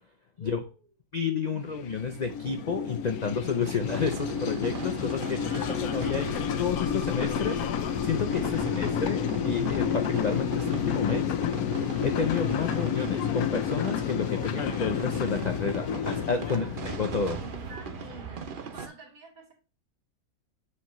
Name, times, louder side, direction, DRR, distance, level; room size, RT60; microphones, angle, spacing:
voice 1, 0.4-0.8 1.5-1.9 5.3-6.4 8.5-8.9 16.5-16.7 17.4-19.5, right 3 dB, 70° right, -1 dB, 3.2 m, -49 dB
voice 2, 1.1-5.4 5.8-7.6 8.0-11.3 12.0-17.4, left 5 dB, 60° left, 6 dB, 0.4 m, -30 dB
sound 1, 1.7-18.4, left 8 dB, 75° left, 1.1 m, -30 dB
sound 2, 3.9-18.9, right 6 dB, 50° right, 0.6 m, -41 dB
sound 3, 5.1-13.7, left 2 dB, 35° left, 1.3 m, -46 dB
7.1 x 4.7 x 3.0 m, 0.33 s
omnidirectional pair, 1.6 m